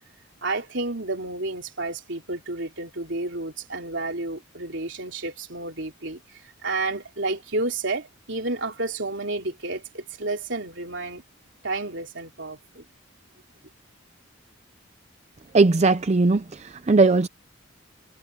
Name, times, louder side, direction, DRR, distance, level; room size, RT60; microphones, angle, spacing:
voice 1, 0.4-6.2 6.6-11.2 11.6-12.8, right 2 dB, 65° right, 4.0 m, -31 dB
voice 2, 15.5-17.3, right 3 dB, 35° right, 0.5 m, -19 dB
head